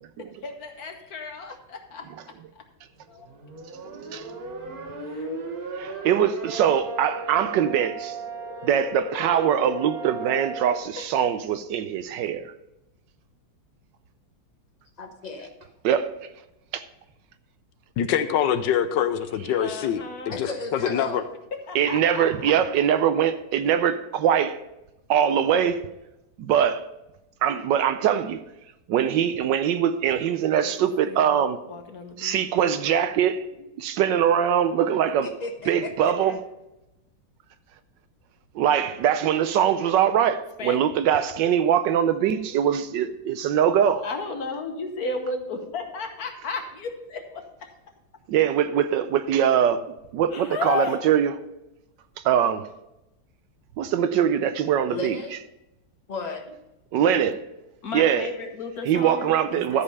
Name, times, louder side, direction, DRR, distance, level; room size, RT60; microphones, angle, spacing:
voice 1, 0.2-2.6 3.1-3.3 5.0-5.3 10.2-10.4 11.0-11.1 19.6-20.4 21.5-22.5 30.6-30.7 31.0-32.4 40.6-40.8 44.0-47.7 50.3-51.0 57.8-59.8, left 4 dB, 55° left, 1.5 m, -34 dB
sound 1, 3.1-10.8, right 3 dB, 50° right, 1.8 m, -36 dB
voice 2, 3.9-4.3 5.7-8.2 8.6-12.5 15.8-16.3 16.7-16.8 21.7-24.6 25.1-25.9 26.4-26.9 27.4-28.4 28.9-31.6 32.2-33.4 33.8-35.3 35.7-36.4 38.5-44.1 48.3-51.3 52.2-52.7 53.8-55.2 56.9-57.4 57.9-58.3 58.9-59.8, right 9 dB, 75° right, 1.2 m, -22 dB
voice 3, 15.0-15.7 20.3-21.2 35.2-36.4 54.9-55.3 56.1-56.6, left 3 dB, 30° left, 0.9 m, -35 dB
voice 4, 18.0-20.0 20.3-21.2, left 9 dB, 75° left, 1.2 m, -24 dB
13.0 x 5.3 x 5.4 m
omnidirectional pair, 2.1 m